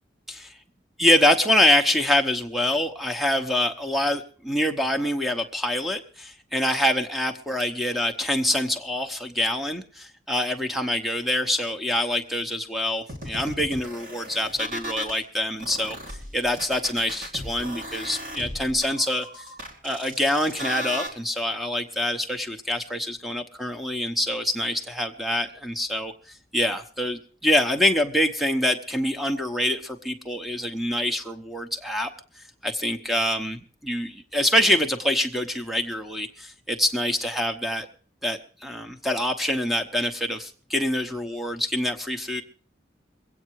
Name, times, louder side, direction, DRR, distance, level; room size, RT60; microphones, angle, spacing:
voice 1, 1.0-19.4 19.8-32.1 32.6-37.9 38.2-42.4, left 1 dB, ahead, 6 dB, 0.9 m, -25 dB
sound 1, 13.1-15.2 15.6-21.1, equal, 45° right, 2.7 m, -36 dB
22.5 x 8.7 x 4.7 m, 0.43 s
head